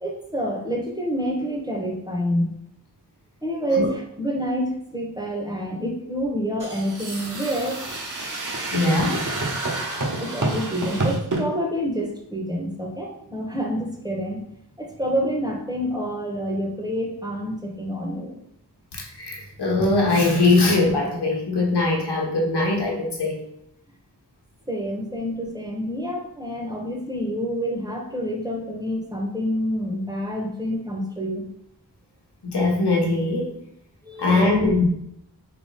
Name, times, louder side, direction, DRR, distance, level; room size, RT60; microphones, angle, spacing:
voice 1, 0.0-2.5 3.4-7.8 10.2-14.5 14.8-18.4 24.7-31.4 34.0-34.7, equal, 10° right, -1 dB, 0.9 m, -27 dB
sound 1, 6.6-11.4, right 2 dB, 45° right, 1.0 m, -28 dB
voice 2, 8.7-9.2 18.9-23.4 32.5-33.6 34.2-34.8, left 2 dB, 70° left, -1 dB, 1.0 m, -21 dB
3.7 x 2.9 x 4.0 m, 0.75 s
wide cardioid pair, 45°, 42 cm